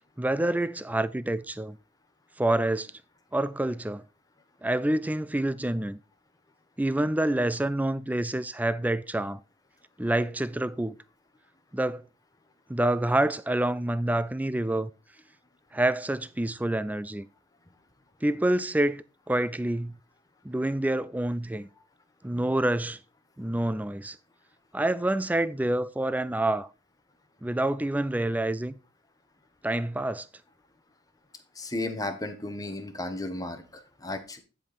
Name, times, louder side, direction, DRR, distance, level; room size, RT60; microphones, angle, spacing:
voice 1, 0.2-1.8 2.4-2.9 3.3-4.0 4.6-6.0 6.8-9.4 10.0-11.0 11.7-12.0 12.7-14.9 15.7-17.3 18.2-20.0 20.4-21.7 22.2-23.0 23.4-24.2 24.7-26.7 27.4-28.7 29.6-30.3, right 1 dB, 10° right, 0.4 m, -27 dB
voice 2, 31.6-34.4, left 2 dB, 20° left, 1.2 m, -34 dB
10.5 x 5.3 x 4.2 m
head